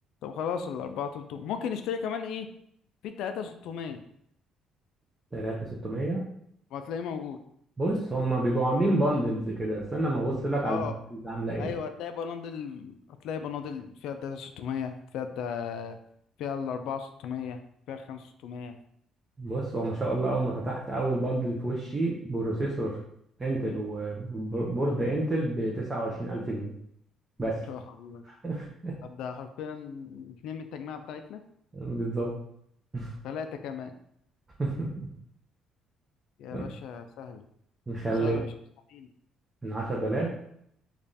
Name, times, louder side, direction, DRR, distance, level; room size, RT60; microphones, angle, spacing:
voice 1, 0.2-2.5 3.0-4.0 6.7-7.4 10.6-10.9 11.6-13.0 13.2-16.0 16.4-17.6 17.9-18.8 27.5-28.2 29.0-31.4 33.2-34.0 36.4-37.4 38.2-38.5 38.9-39.1, left 7 dB, 75° left, 7 dB, 0.3 m, -36 dB
voice 2, 5.3-6.2 7.8-10.9 11.2-11.7 19.4-23.0 23.4-26.7 27.4-27.6 28.4-28.9 31.7-32.3 32.9-33.1 34.6-35.1 36.5-36.6 37.9-38.4 39.6-40.3, right 2 dB, 15° right, -4 dB, 0.7 m, -29 dB
3.4 x 2.4 x 4.0 m, 0.71 s
cardioid pair, 125°, 0 cm